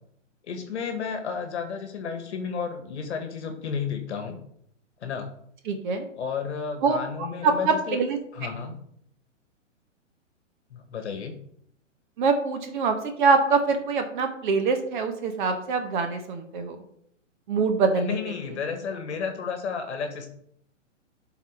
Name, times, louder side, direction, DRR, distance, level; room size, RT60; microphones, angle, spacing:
voice 1, 0.5-4.4 5.0-5.3 6.2-8.0 8.3-8.8 10.7-11.3 17.9-20.3, left 6 dB, 60° left, 5 dB, 1.2 m, -32 dB
voice 2, 5.7-6.0 6.8-7.0 7.4-8.2 12.2-16.8 17.5-18.2, right 4 dB, 40° right, 6 dB, 1.0 m, -24 dB
11.0 x 4.0 x 3.2 m, 0.70 s
hypercardioid pair, 125°, 38 cm